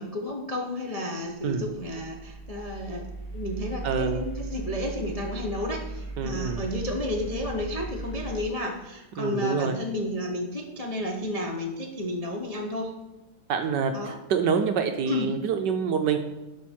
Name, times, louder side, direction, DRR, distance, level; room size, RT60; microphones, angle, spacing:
voice 1, 0.0-12.9 13.9-14.2 15.1-15.3, left 1 dB, 50° left, 0 dB, 0.4 m, -32 dB
sound 1, 1.2-8.4, right 3 dB, 85° left, 2.6 m, -38 dB
voice 2, 3.8-4.3 6.2-6.6 9.2-9.8 13.5-16.2, right 6 dB, 70° right, 6 dB, 1.1 m, -26 dB
11.5 x 6.2 x 4.4 m, 1.1 s
omnidirectional pair, 2.4 m